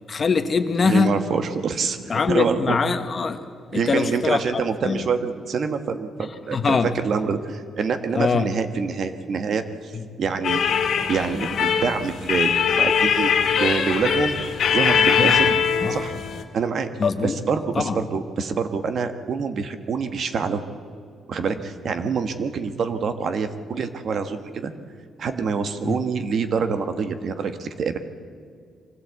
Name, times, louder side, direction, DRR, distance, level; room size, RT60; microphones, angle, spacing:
voice 1, 0.0-1.2 2.1-3.4 3.7-5.1 6.5-6.9 8.1-8.5 9.9-10.0 15.2-15.4 15.8-16.0 17.0-17.4 17.7-18.0 25.8-26.0, left 5 dB, 35° left, 8 dB, 1.2 m, -22 dB
voice 2, 0.8-2.0 2.3-2.8 3.7-9.9 10.2-10.6 11.1-13.3 13.6-14.3 14.7-15.6 15.9-16.1 16.5-16.9 17.2-20.6 21.3-24.7 25.2-28.0, right 5 dB, 55° right, 9 dB, 1.3 m, -26 dB
sound 1, 10.4-16.4, left 7 dB, 65° left, 2.1 m, -21 dB
24.0 x 16.0 x 8.2 m, 2.3 s
cardioid pair, 135°, 0 cm